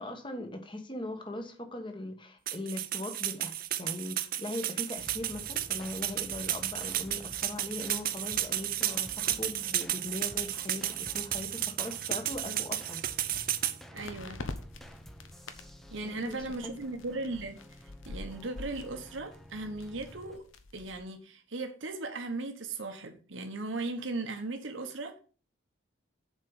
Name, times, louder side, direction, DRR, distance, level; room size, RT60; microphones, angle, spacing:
voice 1, 0.0-13.0 16.0-16.8, left 1 dB, 25° left, 1.3 m, -40 dB
sound 1, 2.5-13.8, right 12 dB, 45° right, 0.6 m, -33 dB
sound 2, 5.0-20.4, equal, ahead, 0.7 m, -51 dB
voice 2, 13.9-14.4 15.9-17.6 18.1-20.5 20.7-25.2, right 2 dB, 75° right, 1.2 m, -37 dB
sound 3, 14.0-21.0, left 2 dB, 85° left, 1.0 m, -46 dB
7.4 x 4.6 x 7.1 m
head